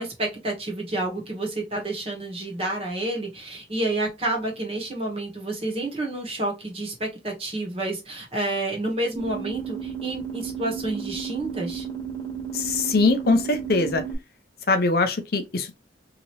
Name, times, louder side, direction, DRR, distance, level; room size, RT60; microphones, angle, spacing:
voice 1, 0.0-11.9, right 2 dB, 35° right, 1.1 m, -29 dB
sound 1, 9.2-14.2, right 7 dB, 20° left, 1.2 m, -33 dB
voice 2, 12.5-14.0 14.7-15.8, left 3 dB, 60° left, 0.6 m, -22 dB
2.9 x 2.7 x 3.0 m
head